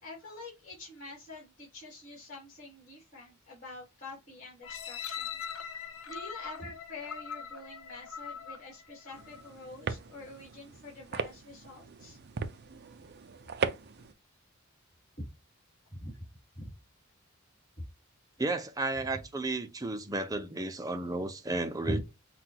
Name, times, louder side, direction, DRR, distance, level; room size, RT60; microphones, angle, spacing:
voice 1, 0.0-5.4 6.1-12.2 16.0-16.1 16.5-16.7 17.8-17.9 21.8-22.0, left 1 dB, 40° left, 2.4 m, -44 dB
sound 1, 4.6-9.6 10.1-10.2, left 7 dB, 85° left, 0.8 m, -42 dB
sound 2, 9.1-14.1, right 5 dB, 55° right, 0.5 m, -38 dB
voice 2, 18.4-22.0, right 2 dB, 20° right, 0.7 m, -33 dB
5.9 x 2.4 x 2.8 m
head